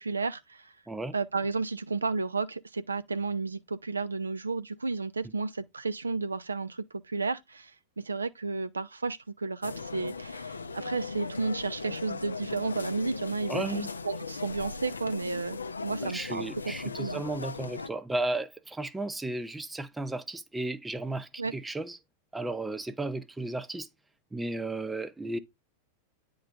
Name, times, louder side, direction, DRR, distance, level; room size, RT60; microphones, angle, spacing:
voice 1, 0.0-0.7 1.1-7.7 8.0-16.5 17.0-17.2 21.4-21.5, right 4 dB, 75° right, 0.4 m, -32 dB
sound 1, 9.6-17.9, left 4 dB, 75° left, 0.5 m, -38 dB
voice 2, 13.5-13.9 16.0-22.0 22.3-23.9 24.3-25.4, right 2 dB, 10° right, 0.6 m, -34 dB
9.4 x 3.9 x 3.3 m
figure-of-eight pair, 90°, 0 cm